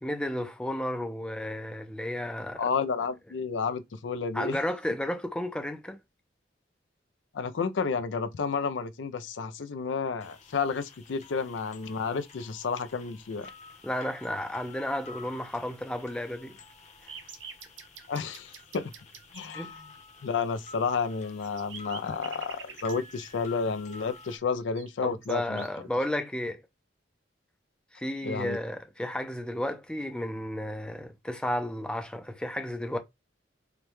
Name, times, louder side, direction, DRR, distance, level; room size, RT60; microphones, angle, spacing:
voice 1, 0.0-2.7 4.3-6.0 13.8-16.6 19.5-19.7 25.0-26.6 27.9-33.0, left 1 dB, 5° left, 0.5 m, -33 dB
voice 2, 2.6-4.6 7.3-13.5 18.1-18.9 19.3-19.8 20.2-25.6 28.2-28.6, left 5 dB, 80° left, 0.5 m, -31 dB
sound 1, 10.2-24.4, left 4 dB, 40° left, 0.8 m, -51 dB
sound 2, 17.1-19.5 20.9-21.0 21.2-22.9 24.3-24.4 24.7-25.8, right 6 dB, 90° right, 0.8 m, -45 dB
5.0 x 2.2 x 3.1 m
head